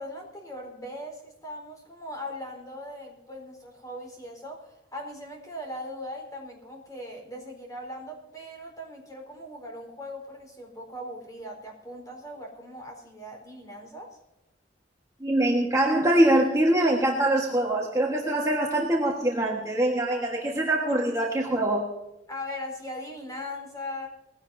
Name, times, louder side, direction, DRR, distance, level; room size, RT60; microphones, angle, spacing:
voice 1, 0.0-14.1 22.3-24.1, left 1 dB, 20° left, 1 dB, 4.2 m, -39 dB
voice 2, 15.2-21.8, right 1 dB, 20° right, -2 dB, 1.5 m, -23 dB
20.0 x 16.5 x 2.7 m, 0.94 s
head